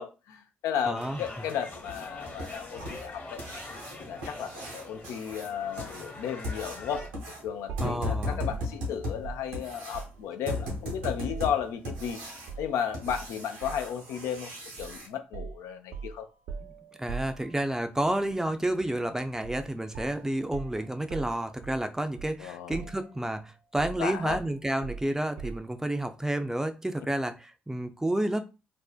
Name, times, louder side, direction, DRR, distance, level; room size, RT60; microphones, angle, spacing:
voice 1, 0.0-3.4 4.0-7.1 7.4-12.2 12.6-14.5 14.8-16.3 22.4-22.8 24.0-24.4, left 8 dB, 70° left, 0.3 m, -34 dB
sound 1, 0.9-7.1, left 2 dB, 40° left, 1.0 m, -44 dB
voice 2, 0.9-1.2 7.8-8.4 16.6-16.7 17.0-28.4, right 1 dB, 10° right, 0.4 m, -30 dB
sound 2, 1.9-15.1 17.4-17.5 17.9-18.0 18.5-18.6 19.1-19.2 19.6-19.8 20.2-20.3 20.7-20.8, left 1 dB, 90° right, 0.8 m, -37 dB
sound 3, 6.9-7.1 7.7-10.3 10.6-12.1 12.5-12.7 13.1-14.0 14.8-15.0 15.3-17.9 19.4-19.7 19.9-22.4 22.7-23.3 23.8-25.8, right 5 dB, 75° right, 0.4 m, -42 dB
2.5 x 2.1 x 2.4 m
hypercardioid pair, 45°, 5 cm